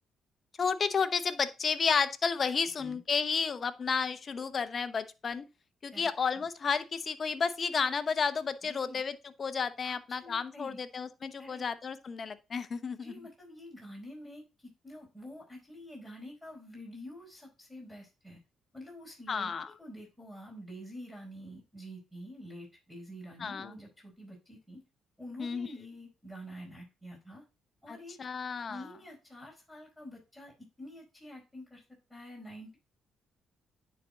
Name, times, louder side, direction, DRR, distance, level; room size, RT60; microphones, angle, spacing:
voice 1, 0.6-5.5 5.8-13.1 19.3-19.7 23.4-23.7 25.4-25.7 27.9-28.8, left 5 dB, 45° left, 0.8 m, -32 dB
voice 2, 8.6-9.0 9.8-10.8 11.4-11.6 13.0-18.4 18.7-24.8 25.2-27.4 27.8-28.2 28.7-31.8 32.1-32.8, equal, ahead, 5.0 m, -48 dB
9.6 x 4.2 x 3.8 m
supercardioid pair, 70°, 0 cm